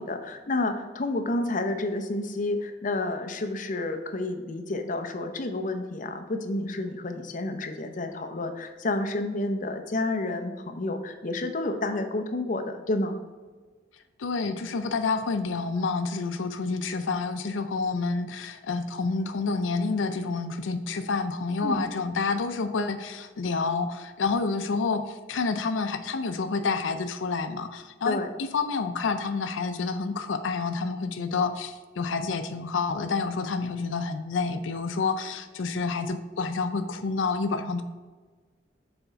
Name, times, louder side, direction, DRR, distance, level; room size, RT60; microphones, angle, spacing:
voice 1, 0.0-13.2 21.6-21.8 28.1-28.3, left 2 dB, 45° left, 6 dB, 0.7 m, -30 dB
voice 2, 14.2-37.8, left 4 dB, 90° left, 9 dB, 0.5 m, -29 dB
6.9 x 4.3 x 3.9 m, 1.4 s
head